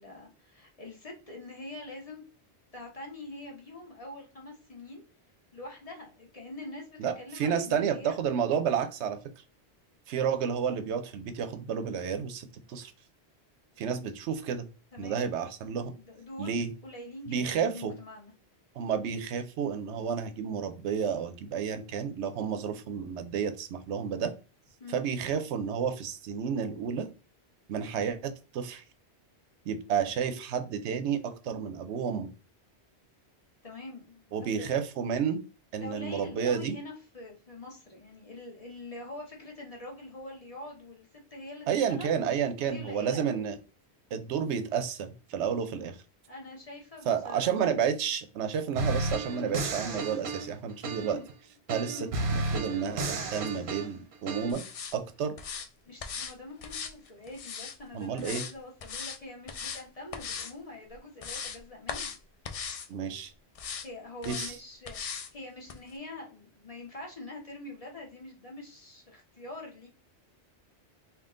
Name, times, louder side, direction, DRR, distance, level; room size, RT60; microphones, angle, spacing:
voice 1, 0.0-2.2 2.7-5.0 5.5-8.1 14.9-15.3 15.9-18.3 24.8-25.0 33.6-34.7 35.8-42.1 42.6-43.5 46.3-47.7 55.9-62.1 63.8-69.9, left 2 dB, 35° left, -1 dB, 1.1 m, -45 dB
voice 2, 7.0-9.2 10.1-12.9 13.8-14.7 15.0-15.9 16.4-16.7 17.3-17.9 18.8-24.3 24.9-27.1 27.7-28.8 29.7-32.3 34.3-35.4 35.7-36.7 41.7-43.6 44.1-46.0 47.1-51.2 51.7-54.6 54.9-55.3 57.9-58.4 62.9-63.3 64.3-64.6, right 7 dB, 90° right, 10 dB, 0.9 m, -31 dB
sound 1, 48.8-51.3 51.7-54.5, right 2 dB, 55° right, 0.8 m, -33 dB
sound 2, 54.5-54.9 55.4-55.7 56.0-56.3 56.6-57.8 58.2-58.5 58.8-59.2 59.5-59.8 60.1-60.5 60.9-61.6 61.9-62.2 62.4-62.9 63.5-63.9 64.2-64.5 64.9-65.3 65.7-65.8, left 6 dB, 65° left, 0.3 m, -38 dB
3.7 x 2.4 x 3.7 m, 0.34 s
omnidirectional pair, 1.1 m